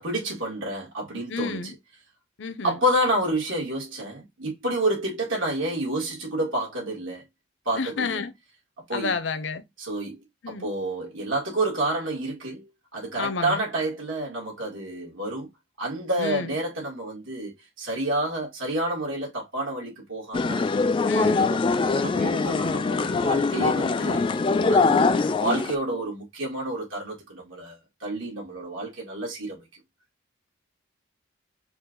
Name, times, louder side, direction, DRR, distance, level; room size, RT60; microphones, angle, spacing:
voice 1, 0.0-1.7 2.6-7.2 7.7-8.2 8.9-9.1 9.8-15.5 15.8-20.6 21.0-21.6 21.8-24.3 24.7-29.6, right 1 dB, 85° right, 1.9 m, -29 dB
voice 2, 1.3-1.7 2.4-2.8 7.7-8.3 8.9-9.6 10.4-10.7 13.2-13.6 16.2-16.5 21.1-21.5, left 4 dB, 70° left, 0.7 m, -30 dB
sound 1, 20.3-25.7, left 4 dB, 25° left, 0.3 m, -23 dB
4.4 x 2.4 x 3.7 m
head